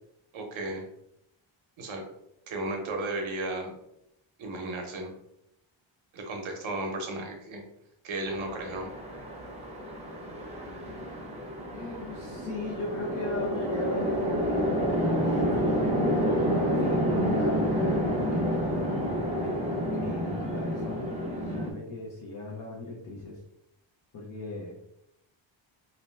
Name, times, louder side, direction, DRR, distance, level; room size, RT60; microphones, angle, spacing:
voice 1, 0.3-0.9 1.8-2.0 2.5-3.7 4.4-5.1 6.1-7.6 8.0-8.9, right 2 dB, 75° right, 2 dB, 0.9 m, -34 dB
Chatter / Traffic noise roadway noise / Train, 8.3-21.7, equal, 15° right, 0.7 m, -29 dB
voice 2, 11.7-15.3 16.4-19.7 19.9-21.1 21.4-23.4 24.1-24.8, left 2 dB, 40° left, -4 dB, 0.7 m, -38 dB
2.7 x 2.1 x 3.2 m, 0.80 s
cardioid pair, 95°, 48 cm